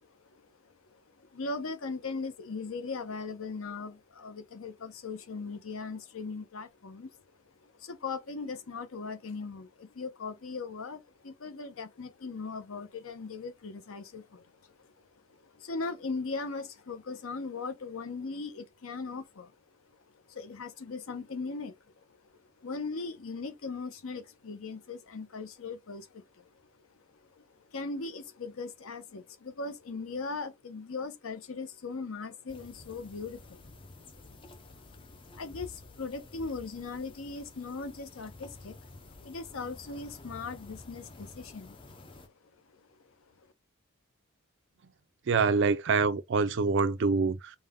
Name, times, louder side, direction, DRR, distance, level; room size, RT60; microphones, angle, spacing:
voice 1, 1.3-7.1 7.6-14.5 14.8-14.9 15.3-19.5 20.3-21.8 22.6-26.5 27.4-27.5 27.7-33.6 34.3-34.4 34.8-34.9 35.3-38.8 39.2-41.8 42.7-42.8, left 4 dB, 65° left, 0.7 m, -39 dB
sound 1, 32.5-42.3, left 2 dB, 20° left, 0.5 m, -51 dB
voice 2, 45.3-47.6, right 4 dB, 55° right, 0.4 m, -26 dB
5.2 x 2.2 x 3.5 m
head